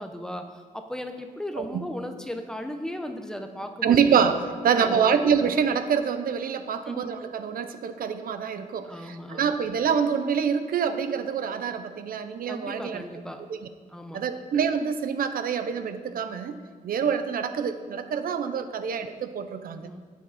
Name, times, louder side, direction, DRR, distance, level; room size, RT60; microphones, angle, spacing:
voice 1, 0.0-4.1 4.7-5.3 6.8-7.1 8.8-9.6 12.5-13.4 13.9-14.2 19.8-20.0, equal, 5° left, 5 dB, 0.9 m, -36 dB
voice 2, 3.8-13.0 13.5-13.7 14.1-19.9, right 7 dB, 85° right, 10 dB, 0.8 m, -26 dB
14.5 x 9.5 x 4.2 m, 1.5 s
wide cardioid pair, 150°, 14 cm